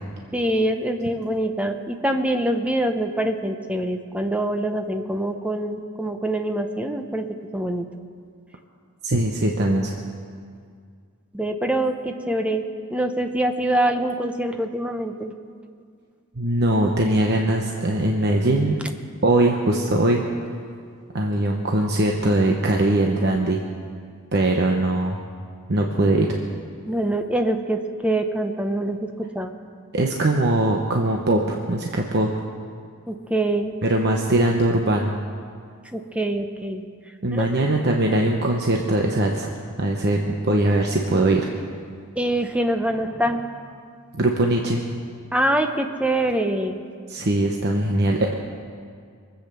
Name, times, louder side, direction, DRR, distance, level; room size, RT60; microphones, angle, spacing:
voice 1, 0.3-7.3 7.5-7.9 11.3-12.6 12.9-15.3 26.9-29.5 33.1-33.7 35.9-36.8 37.3-37.5 42.2-43.7 45.3-46.8, right 1 dB, 5° right, 6 dB, 0.8 m, -24 dB
voice 2, 9.0-10.0 16.4-18.8 19.2-20.2 21.1-23.6 24.3-25.2 25.7-26.3 29.9-32.4 33.8-35.1 37.2-39.5 39.8-41.5 44.1-44.8 47.1-48.4, right 1 dB, 50° right, 1 dB, 0.9 m, -21 dB
22.5 x 8.2 x 6.8 m, 2.2 s
head